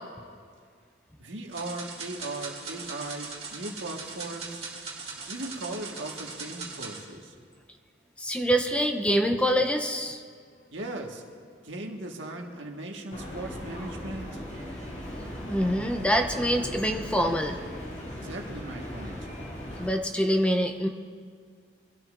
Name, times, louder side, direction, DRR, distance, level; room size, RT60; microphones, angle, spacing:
voice 1, 1.2-4.6 5.3-7.3 10.7-11.2 11.6-14.4 18.2-19.2, right 2 dB, 85° right, 1 dB, 1.7 m, -38 dB
sound 1, 1.5-7.0, right 4 dB, 35° right, 2.5 m, -40 dB
voice 2, 8.2-10.2 15.5-17.6 19.8-20.9, equal, 5° left, 4 dB, 0.6 m, -25 dB
sound 2, 13.1-19.9, equal, 35° left, 2.4 m, -38 dB
24.0 x 13.0 x 2.6 m, 2.1 s
head